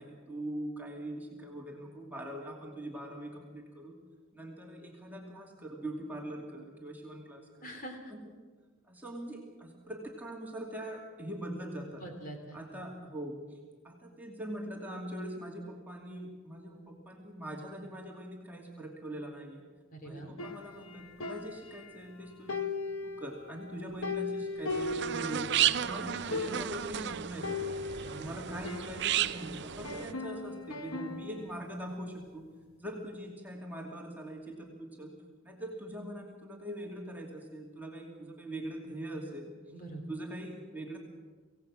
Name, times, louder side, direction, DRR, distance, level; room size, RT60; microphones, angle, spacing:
voice 1, 0.0-4.0 4.3-7.7 8.1-8.2 8.9-12.0 12.5-13.6 13.8-19.6 20.0-22.6 23.0-32.5 32.8-35.2 35.4-39.5 40.1-41.0, right 1 dB, 10° right, -1 dB, 2.6 m, -42 dB
voice 2, 7.6-8.1 12.0-12.6 19.9-20.3 28.0-28.3 39.7-40.0, right 1 dB, 40° left, 3 dB, 3.8 m, -44 dB
sound 1, 20.4-22.1 22.5-25.8 26.0-26.1 26.3-26.9 27.4-29.4 29.8-31.5, left 4 dB, 80° left, 1.3 m, -38 dB
sound 2, 24.7-30.1, right 10 dB, 50° right, 0.5 m, -33 dB
25.5 x 17.5 x 6.3 m, 1.4 s
head